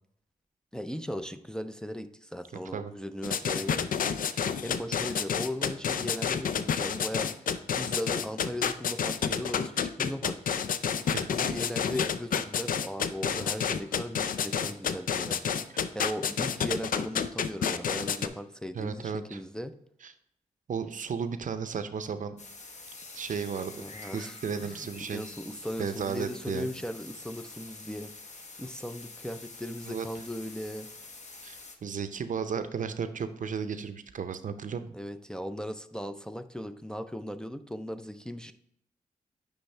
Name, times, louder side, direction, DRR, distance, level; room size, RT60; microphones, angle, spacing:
voice 1, 0.7-10.4 11.3-15.4 15.9-19.7 23.8-28.1 28.6-30.9 34.9-38.5, equal, 5° left, 8 dB, 0.5 m, -38 dB
sound 1, 3.2-18.3, left 7 dB, 65° left, 0.4 m, -29 dB
voice 2, 18.7-19.4 20.0-20.1 20.7-22.4 23.1-23.9 24.1-25.2 25.8-26.7 29.9-30.1 31.4-34.9, right 6 dB, 60° right, 10 dB, 0.6 m, -34 dB
sound 2, 22.4-31.8, left 3 dB, 50° left, 1.0 m, -47 dB
9.7 x 3.5 x 3.3 m, 0.76 s
cardioid pair, 50°, 15 cm